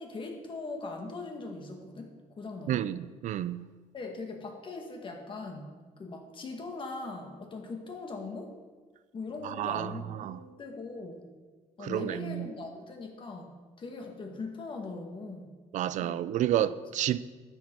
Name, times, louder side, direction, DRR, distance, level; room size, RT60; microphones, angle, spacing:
voice 1, 0.0-2.9 3.9-5.7 6.0-8.6 9.1-11.3 11.8-15.5 16.0-16.3 16.8-16.9, left 3 dB, 40° left, 1.9 m, -40 dB
voice 2, 2.7-3.6 9.4-9.9 10.2-10.4 11.8-12.5 15.7-17.2, right 12 dB, 65° right, 0.4 m, -30 dB
12.5 x 7.9 x 4.6 m
cardioid pair, 110°, 13 cm